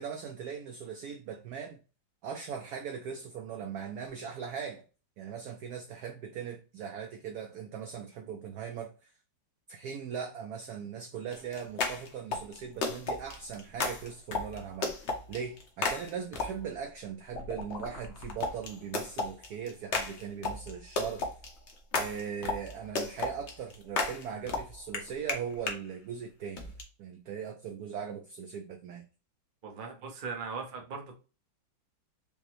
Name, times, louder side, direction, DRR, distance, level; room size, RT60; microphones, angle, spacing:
voice 1, 0.0-1.8 2.2-4.8 5.2-9.1 9.7-21.3 22.0-26.7 27.0-29.1, right 7 dB, 80° right, 0.8 m, -39 dB
sound 1, 11.3-16.8 17.3-25.8 26.6-26.8, left 3 dB, 55° left, 0.7 m, -35 dB
voice 2, 29.6-31.1, right 5 dB, 50° right, 0.5 m, -39 dB
5.1 x 2.1 x 3.0 m
omnidirectional pair, 2.2 m